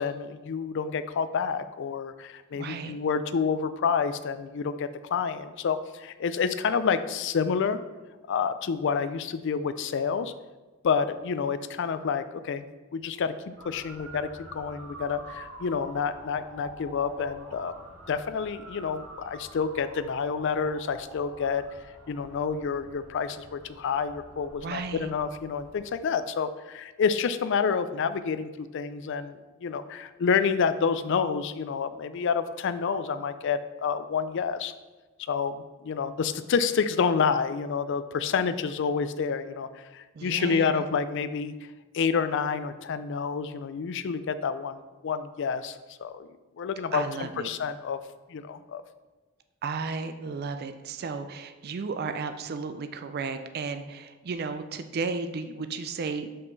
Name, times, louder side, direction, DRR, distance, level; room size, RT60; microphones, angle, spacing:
voice 1, 0.0-7.8 8.3-10.3 10.8-12.7 12.9-13.3 13.6-17.7 18.1-21.6 22.1-34.7 35.3-41.5 41.9-46.3 46.6-48.0 48.3-48.8, left 6 dB, 60° left, 12 dB, 0.4 m, -28 dB
voice 2, 2.5-3.0 24.6-25.1 40.1-40.8 46.9-47.5 49.6-56.4, right 4 dB, 50° right, 9 dB, 0.4 m, -34 dB
Motor vehicle (road) / Siren, 13.6-25.8, right 1 dB, 85° right, 1.3 m, -47 dB
5.5 x 5.5 x 3.9 m, 1.2 s
head